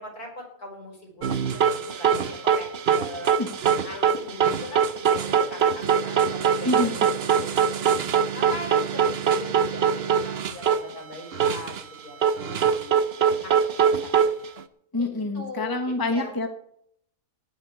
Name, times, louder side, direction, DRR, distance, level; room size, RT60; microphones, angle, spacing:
voice 1, 0.0-3.3 3.8-7.8 8.3-11.8 12.0-14.3 15.0-16.4, left 1 dB, 65° left, 1 dB, 6.0 m, -40 dB
sound 1, 1.2-10.8 11.1-11.8 12.2-14.6, right 7 dB, 50° right, 0.9 m, -23 dB
voice 2, 14.9-16.5, left 2 dB, 15° left, 6 dB, 1.4 m, -26 dB
19.0 x 9.8 x 4.8 m, 0.68 s
omnidirectional pair, 1.7 m